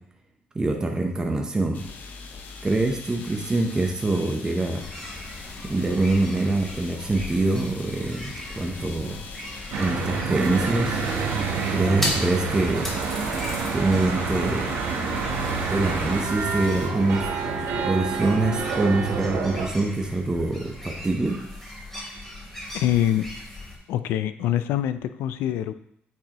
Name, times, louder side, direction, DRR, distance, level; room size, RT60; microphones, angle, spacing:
voice 1, 0.5-1.8 2.6-4.8 5.7-9.2 9.8-11.0 11.7-12.9 13.7-14.7 15.7-17.3 17.8-21.4, right 2 dB, 20° right, 2 dB, 0.8 m, -24 dB
sound 1, 1.7-16.9, left 5 dB, 55° left, 0.9 m, -42 dB
sound 2, 4.8-23.8, left 1 dB, 10° left, 2.5 m, -38 dB
Church bell / Traffic noise roadway noise, 9.7-19.7, right 5 dB, 90° right, 1.0 m, -28 dB
voice 2, 22.7-23.3 23.9-25.7, left 11 dB, 90° left, 12 dB, 0.3 m, -24 dB
8.7 x 4.6 x 3.0 m, 0.73 s
cardioid pair, 115°, 4 cm